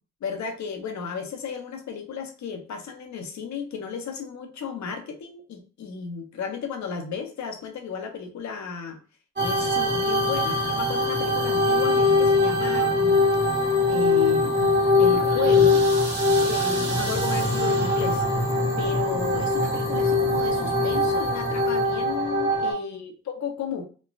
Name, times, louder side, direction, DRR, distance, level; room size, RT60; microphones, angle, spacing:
voice 1, 0.2-9.0 9.4-13.2 13.9-14.7 15.0-15.8 16.3-18.2 18.8-23.8, left 6 dB, 70° left, 4 dB, 0.7 m, -33 dB
sound 1, 9.4-22.7, left 2 dB, 35° right, 1.3 m, -22 dB
3.0 x 2.1 x 2.4 m, 0.38 s
supercardioid pair, 50°, 29 cm